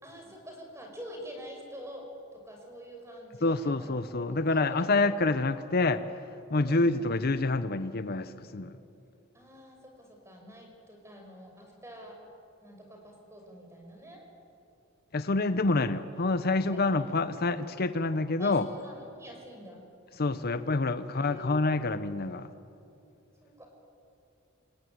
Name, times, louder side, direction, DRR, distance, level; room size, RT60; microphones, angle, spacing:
voice 1, 0.0-4.0 4.3-4.9 6.6-7.1 9.3-12.2 12.6-14.2 16.6-17.0 18.4-19.8 21.1-21.6 23.4-23.7, equal, 15° right, 2 dB, 5.8 m, -47 dB
voice 2, 3.4-8.8 15.1-18.7 20.2-22.5, left 3 dB, 50° left, 12 dB, 0.8 m, -27 dB
27.0 x 21.5 x 9.5 m, 2.8 s
head